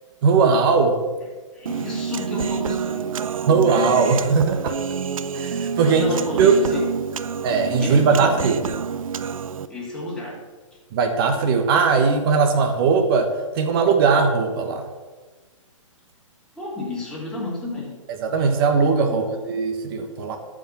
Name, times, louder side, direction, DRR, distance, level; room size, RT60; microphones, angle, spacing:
voice 1, 0.2-1.0 3.5-4.8 5.3-6.0 6.4-6.5 7.4-8.6 10.9-14.8 18.1-20.4, right 5 dB, 45° right, 4 dB, 1.3 m, -19 dB
voice 2, 1.5-3.2 5.8-6.9 7.2-7.3 7.8-8.4 9.7-10.4 16.6-18.0 19.1-19.4, left 2 dB, 5° left, -5 dB, 3.0 m, -32 dB
Human voice, 1.7-9.7, right 6 dB, 80° right, 0.6 m, -28 dB
12.5 x 5.2 x 5.9 m, 1.3 s
hypercardioid pair, 135°, 17 cm